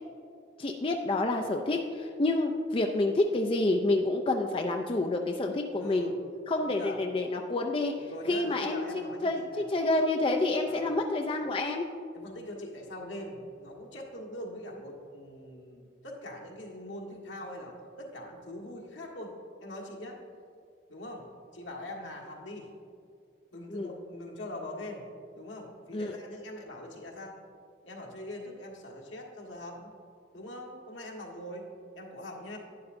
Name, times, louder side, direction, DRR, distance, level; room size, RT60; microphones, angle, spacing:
voice 1, 0.6-6.1 6.5-9.4 9.7-11.9 23.7-23.9 25.9-26.1, left 2 dB, 25° left, 3 dB, 0.4 m, -28 dB
voice 2, 5.8-6.2 6.6-7.0 8.0-9.6 10.6-10.8 12.1-20.2 20.9-21.3 21.5-22.7 23.5-25.1 25.3-27.4 27.8-29.9 30.3-31.6 31.9-32.6, left 1 dB, 80° left, -1 dB, 1.5 m, -42 dB
11.0 x 9.7 x 2.6 m, 2.4 s
head